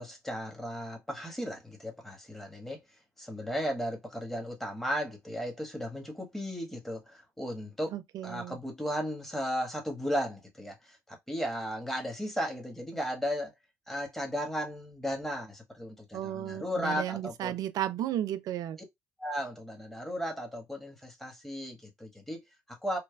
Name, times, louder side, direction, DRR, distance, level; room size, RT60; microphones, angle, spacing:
voice 1, 0.0-2.8 3.2-7.9 8.2-13.5 13.9-17.5 19.2-23.0, equal, 5° left, 1.4 m, -35 dB
voice 2, 7.9-8.6 16.1-18.8, right 12 dB, 60° right, 0.4 m, -34 dB
3.2 x 2.2 x 2.2 m
hypercardioid pair, 55°, 7 cm